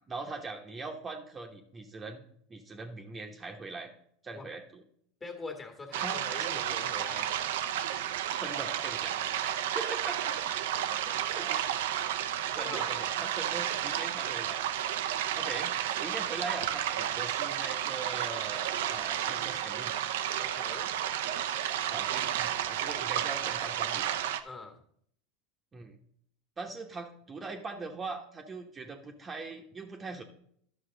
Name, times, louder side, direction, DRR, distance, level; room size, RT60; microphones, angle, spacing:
voice 1, 0.1-2.2 2.5-3.9 4.2-4.8 6.0-6.5 8.4-10.4 11.3-11.7 12.2-14.6 15.4-19.9 21.9-24.2 25.7-26.0 26.6-30.2, right 3 dB, 25° right, 3 dB, 1.0 m, -41 dB
voice 2, 5.2-7.3 11.0-11.1 12.5-13.0 20.4-20.9 24.4-24.8, left 3 dB, 25° left, 4 dB, 1.8 m, -43 dB
sound 1, 5.9-24.4, right 11 dB, 80° right, 0.6 m, -32 dB
11.5 x 6.0 x 3.9 m, 0.66 s
hypercardioid pair, 100°, 0 cm